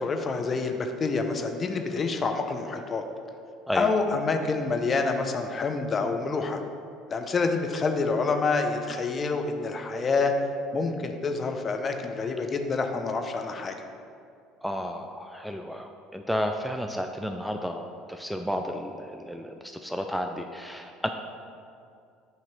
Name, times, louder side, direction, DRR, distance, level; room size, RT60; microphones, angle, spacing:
voice 1, 0.0-3.0 3.7-6.6 7.1-10.3 10.7-13.8, left 4 dB, 35° left, 5 dB, 0.8 m, -27 dB
voice 2, 14.6-21.1, equal, ahead, 4 dB, 0.4 m, -32 dB
8.7 x 3.0 x 5.9 m, 2.4 s
hypercardioid pair, 65°, 0 cm